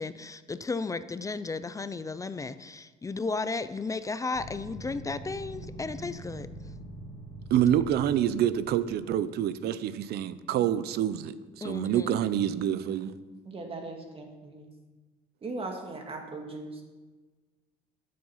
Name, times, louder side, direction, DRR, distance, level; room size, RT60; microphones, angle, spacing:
voice 1, 0.0-6.5 11.6-12.2, left 4 dB, 20° left, 13 dB, 0.5 m, -34 dB
Zeppelin Motor, 4.3-8.9, right 1 dB, 40° left, 2.1 m, -43 dB
voice 2, 7.5-11.3 11.6-13.2, right 10 dB, 70° right, 15 dB, 0.7 m, -27 dB
voice 3, 13.5-14.7 15.4-16.7, right 2 dB, 35° right, 2 dB, 1.9 m, -38 dB
14.0 x 7.8 x 5.6 m, 1.3 s
cardioid pair, 110°, 17 cm